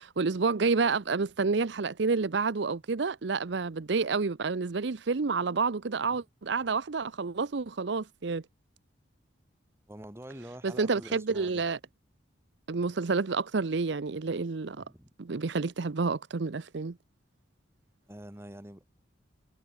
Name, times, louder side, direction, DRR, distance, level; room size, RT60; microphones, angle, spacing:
voice 1, 0.0-8.4 10.6-11.8 12.7-14.8 15.2-16.9, right 4 dB, 65° right, 0.6 m, -29 dB
voice 2, 9.9-11.6 14.8-15.1 18.1-18.9, equal, 15° right, 3.2 m, -46 dB
head